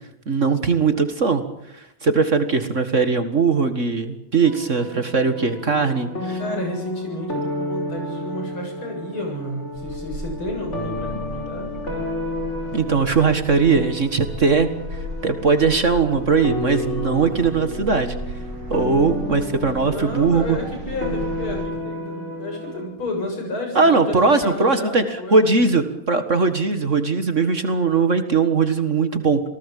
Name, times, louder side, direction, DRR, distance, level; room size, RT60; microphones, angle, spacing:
voice 1, 0.3-1.4 1.7-6.4 12.7-18.2 18.7-20.6 23.8-29.4, right 4 dB, 40° right, 9 dB, 1.9 m, -20 dB
sound 1, 4.4-22.9, left 2 dB, 35° left, 5.3 m, -32 dB
voice 2, 6.4-11.7 19.8-25.6, left 1 dB, 85° left, 2 dB, 8.4 m, -31 dB
sound 2, 9.7-21.7, right 2 dB, 80° right, 3.0 m, -35 dB
28.0 x 19.0 x 8.5 m, 0.84 s
omnidirectional pair, 2.2 m